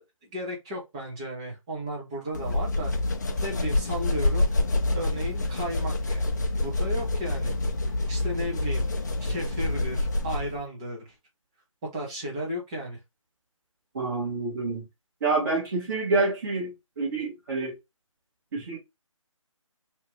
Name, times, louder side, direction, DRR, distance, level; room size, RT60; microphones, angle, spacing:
voice 1, 0.0-2.9 3.4-4.5 4.9-6.3 6.6-7.5 7.9-8.9 9.2-11.1 11.9-13.0, equal, 10° right, 0.6 m, -34 dB
sound 1, 2.3-10.6, left 2 dB, 35° left, 0.5 m, -27 dB
voice 2, 13.9-14.8 15.2-17.7 18.5-18.8, right 3 dB, 35° right, 1.2 m, -27 dB
2.8 x 2.4 x 2.9 m
figure-of-eight pair, 160°, 17 cm